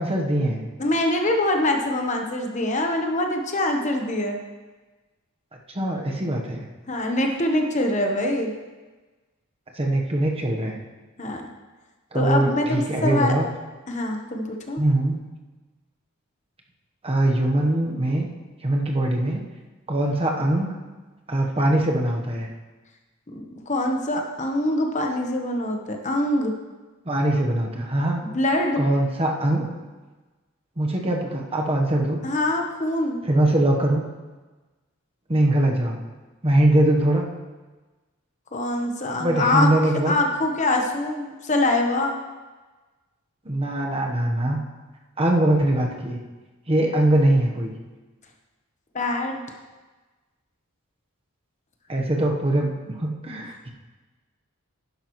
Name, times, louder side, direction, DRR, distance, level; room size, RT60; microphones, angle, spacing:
voice 1, 0.0-0.6 5.7-6.6 9.7-10.8 12.1-13.5 14.8-15.2 17.0-18.3 18.6-19.4 19.9-20.7 21.3-22.5 27.0-28.3 28.8-29.7 30.8-32.2 33.2-34.0 35.3-36.0 36.4-37.2 39.2-40.2 43.4-44.6 45.2-46.2 46.7-47.7 51.9-53.7, right 1 dB, 25° right, 1 dB, 1.1 m, -22 dB
voice 2, 0.8-4.4 6.9-8.5 11.2-11.4 12.1-13.3 13.9-14.8 23.3-26.5 28.2-28.8 32.2-33.2 38.5-39.7 40.0-42.2 48.9-49.4, left 1 dB, 35° left, 3 dB, 1.0 m, -24 dB
11.5 x 11.0 x 3.1 m, 1.2 s
head